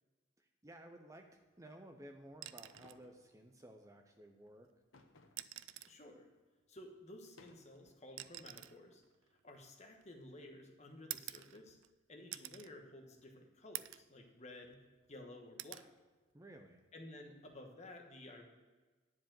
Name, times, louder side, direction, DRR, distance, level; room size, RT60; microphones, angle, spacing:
voice 1, 0.4-4.7 16.3-16.8, right 1 dB, 15° right, 4 dB, 0.6 m, -56 dB
sound 1, 2.3-3.0 4.5-4.6 5.2-6.0 7.2-10.3 11.1-11.9 12.3-12.7 13.2-13.3 13.7-14.1 14.6-15.2 15.6-15.9 17.4-17.6, right 15 dB, 70° right, 0.3 m, -49 dB
sound 2, 2.7-3.3 4.9-5.5 6.0-6.1 7.1-7.9, left 2 dB, 75° left, 0.9 m, -63 dB
voice 2, 5.9-6.3 6.7-9.0 9.4-11.8 12.1-14.8 15.1-15.9 16.9-18.5, left 1 dB, 35° left, 3 dB, 1.2 m, -54 dB
10.5 x 4.7 x 7.5 m, 1.3 s
head